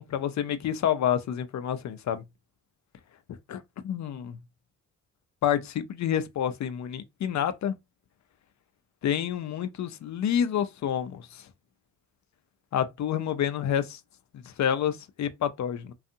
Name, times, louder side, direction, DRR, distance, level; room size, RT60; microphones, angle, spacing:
voice 1, 0.0-2.2 3.5-4.4 5.4-7.7 9.0-11.5 12.7-14.0 14.4-15.9, left 9 dB, 50° left, 0.6 m, -28 dB
2.5 x 2.4 x 2.6 m
hypercardioid pair, 55°, 38 cm